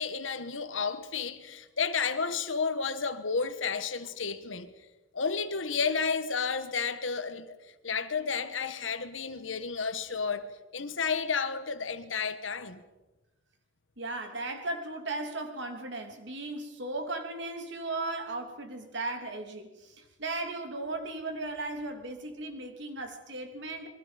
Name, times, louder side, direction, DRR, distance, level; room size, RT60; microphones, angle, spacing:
voice 1, 0.0-4.7 5.1-7.6 7.8-12.8, left 5 dB, 70° left, 1.5 m, -32 dB
voice 2, 14.0-23.9, right 2 dB, 60° right, 3.1 m, -36 dB
28.5 x 22.5 x 5.3 m
head